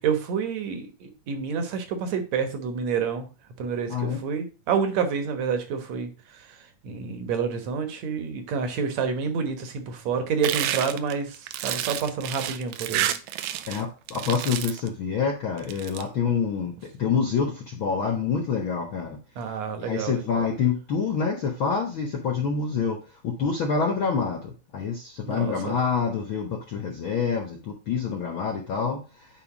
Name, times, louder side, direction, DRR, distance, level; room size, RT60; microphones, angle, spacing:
voice 1, 0.0-3.3 3.6-6.1 6.8-13.1 19.4-20.5 25.3-25.8, right 6 dB, 65° right, 7 dB, 2.2 m, -28 dB
voice 2, 3.9-4.2 13.7-19.2 19.8-23.0 23.2-29.3, left 6 dB, 70° left, 1 dB, 1.2 m, -27 dB
sound 1, 10.4-13.8 14.1-14.9 15.6-16.0, right 12 dB, 80° right, 1.8 m, -29 dB
9.7 x 3.6 x 5.0 m, 0.33 s
omnidirectional pair, 3.8 m